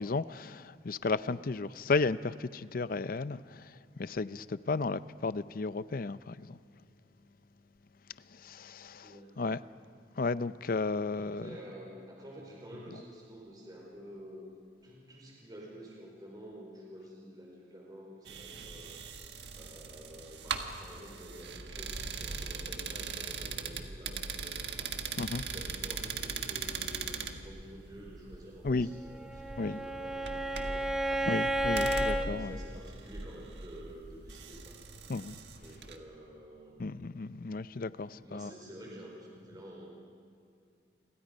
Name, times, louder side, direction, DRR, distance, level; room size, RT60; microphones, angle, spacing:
voice 1, 0.0-3.6 4.0-6.6 8.4-9.6 10.2-11.5 25.2-25.4 28.6-28.9 29.6-29.8 31.3-32.5 35.1-35.4 36.8-38.5, left 3 dB, 55° left, 0.5 m, -33 dB
voice 2, 9.0-9.4 11.1-14.5 14.8-19.0 19.5-30.9 31.7-34.8 35.6-36.8 38.0-39.9, equal, 25° right, 4.9 m, -49 dB
sound 1, 18.3-36.0, right 5 dB, 70° right, 1.6 m, -40 dB
Bowed string instrument, 29.1-32.3, right 1 dB, 5° right, 1.2 m, -32 dB
29.5 x 24.0 x 5.3 m
head